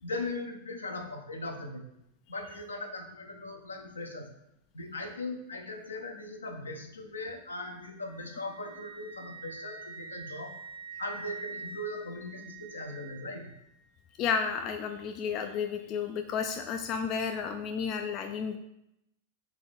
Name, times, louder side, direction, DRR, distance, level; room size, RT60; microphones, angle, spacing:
voice 1, 0.0-1.9 2.3-4.3 4.7-10.5 11.0-13.5, left 2 dB, 75° left, 3 dB, 0.6 m, -39 dB
Wind instrument woodwind instrument, 7.7-13.7, right 5 dB, 45° right, 0.8 m, -46 dB
voice 2, 14.2-18.6, left 6 dB, 35° left, 5 dB, 0.3 m, -32 dB
3.8 x 3.7 x 3.4 m, 0.82 s
figure-of-eight pair, 90°, 0 cm